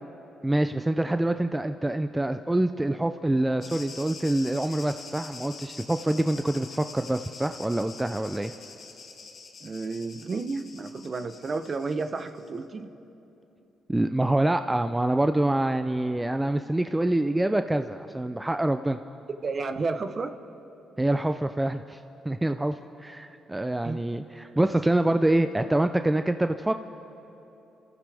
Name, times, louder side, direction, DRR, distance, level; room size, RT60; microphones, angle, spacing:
voice 1, 0.4-8.5 13.9-19.0 21.0-22.0 22.3-26.7, right 1 dB, 10° right, 8 dB, 0.4 m, -26 dB
sound 1, 3.6-12.5, left 4 dB, 55° left, 1.7 m, -45 dB
voice 2, 9.6-12.9 19.4-20.4 23.8-24.0, right 4 dB, 40° right, 9 dB, 0.9 m, -31 dB
28.5 x 14.5 x 3.5 m, 2.9 s
cardioid pair, 90°, 0 cm